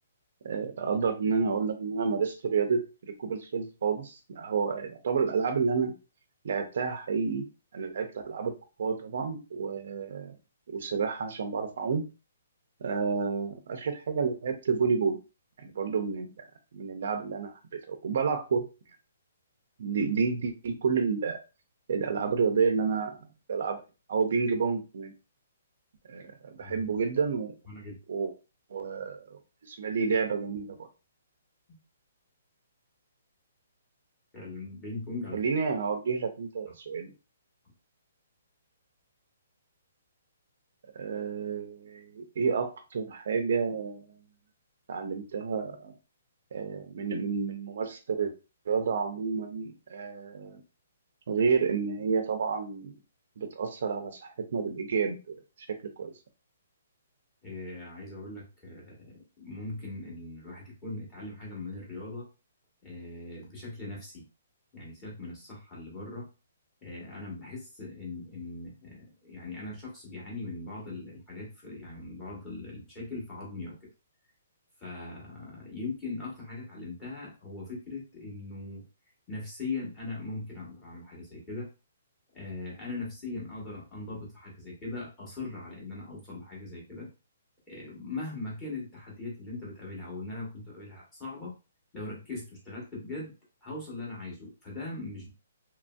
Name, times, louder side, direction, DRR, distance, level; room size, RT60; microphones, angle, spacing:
voice 1, 0.4-5.9 6.4-7.5 7.7-8.5 8.8-10.4 10.7-12.1 12.8-15.2 15.6-16.3 16.7-18.7 19.8-21.4 21.9-23.2 23.5-23.8 24.1-25.1 26.1-27.5 28.1-28.3 28.7-30.9 35.3-37.1 40.9-44.1 44.9-45.9 46.5-48.3 48.7-50.6 51.3-52.9 53.4-56.1, right 5 dB, 55° right, 7 dB, 0.4 m, -30 dB
voice 2, 26.6-27.0 27.7-28.0 34.3-35.4 57.4-62.3 62.8-64.2 64.7-66.3 66.8-73.8 74.8-78.8 79.3-81.7 82.3-87.1 87.7-91.6 91.9-93.3 93.6-95.3, left 3 dB, 15° left, -5 dB, 1.0 m, -40 dB
2.9 x 2.5 x 2.2 m, 0.30 s
hypercardioid pair, 170°, 0 cm